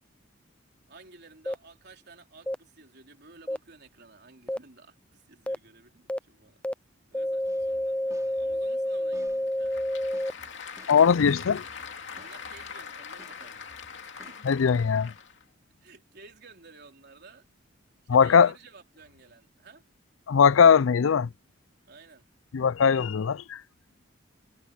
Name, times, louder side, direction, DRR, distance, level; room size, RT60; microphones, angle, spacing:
voice 1, 0.9-6.6 7.1-9.9 12.1-14.7 15.8-17.5 18.1-19.8 21.9-22.3, right 4 dB, 55° right, 4.0 m, -53 dB
sound 1, 1.5-1.6 2.5-2.6 3.5-3.6 4.5-4.6 5.5-5.6 6.1-6.2 6.6-6.7 7.1-10.3, left 1 dB, 5° left, 0.5 m, -29 dB
sound 2, 7.4-12.9 13.2-14.4, right 1 dB, 15° right, 3.2 m, -57 dB
Applause / Crowd, 9.3-15.4, left 6 dB, 65° left, 2.8 m, -42 dB
voice 2, 10.9-11.6 14.5-15.1 18.1-18.5 20.3-21.3 22.5-23.6, left 6 dB, 85° left, 0.4 m, -20 dB
head